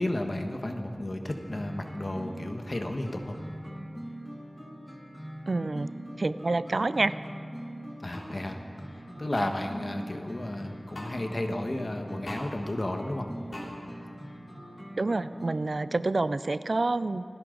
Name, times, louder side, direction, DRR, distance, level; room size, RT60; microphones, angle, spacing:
voice 1, 0.0-3.4 8.0-8.6 9.2-13.3, left 1 dB, 45° left, 4 dB, 1.3 m, -33 dB
sound 1, 1.3-15.7, equal, 5° left, 1.8 m, -42 dB
voice 2, 5.5-5.9 6.2-7.1 15.0-17.2, right 2 dB, 65° right, 14 dB, 0.4 m, -27 dB
sound 2, 8.1-8.3 9.3-9.5 10.9-11.1 12.2-12.5 13.5-13.7, left 1 dB, 70° left, 3.3 m, -39 dB
29.5 x 10.5 x 3.9 m, 2.4 s
wide cardioid pair, 55°, 0 cm